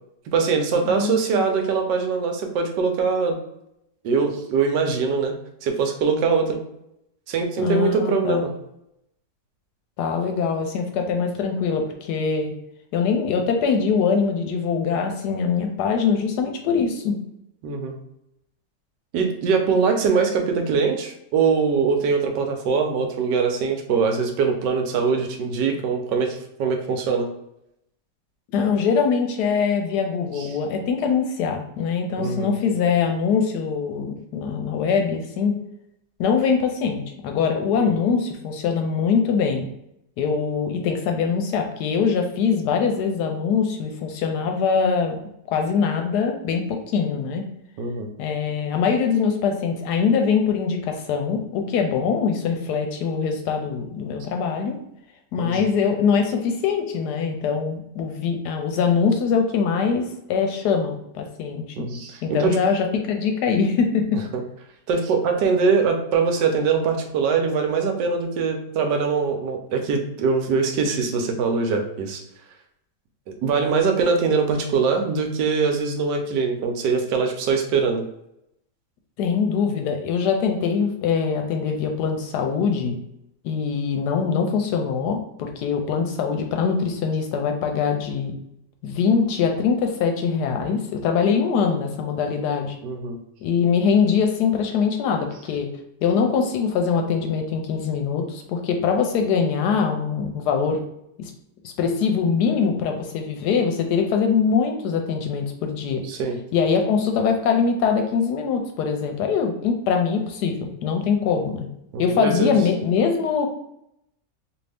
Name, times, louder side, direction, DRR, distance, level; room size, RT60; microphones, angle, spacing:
voice 1, 0.3-3.4 4.0-5.3 5.6-6.6 7.3-8.5 17.6-17.9 19.1-27.3 30.3-30.5 32.2-32.5 37.8-37.9 47.8-48.1 55.4-55.6 61.8-62.6 64.3-64.4 64.9-72.2 73.4-78.0 92.8-93.2 106.1-106.4 111.9-112.5, right 5 dB, 85° right, 4 dB, 1.2 m, -22 dB
voice 2, 0.8-1.4 7.6-8.4 10.0-12.5 12.9-17.2 28.5-35.6 36.2-39.7 40.2-45.2 45.5-47.4 48.2-54.8 55.3-61.6 62.2-64.2 79.2-83.0 83.4-88.3 88.8-92.8 93.4-95.7 96.0-100.8 101.2-101.3 101.6-106.0 106.5-111.7 112.0-113.5, left 6 dB, 75° left, 4 dB, 1.1 m, -23 dB
2.8 x 2.6 x 3.3 m, 0.80 s
omnidirectional pair, 1.9 m